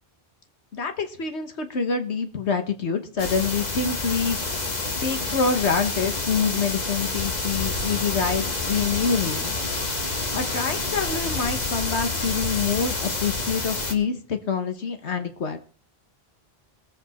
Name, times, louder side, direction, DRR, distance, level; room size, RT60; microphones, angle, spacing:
voice 1, 0.7-4.5 5.0-9.5 10.3-15.6, left 5 dB, 80° left, 7 dB, 1.5 m, -26 dB
sound 1, 3.2-13.9, left 3 dB, 40° left, 1.6 m, -28 dB
21.0 x 8.0 x 4.2 m, 0.38 s
omnidirectional pair, 1.1 m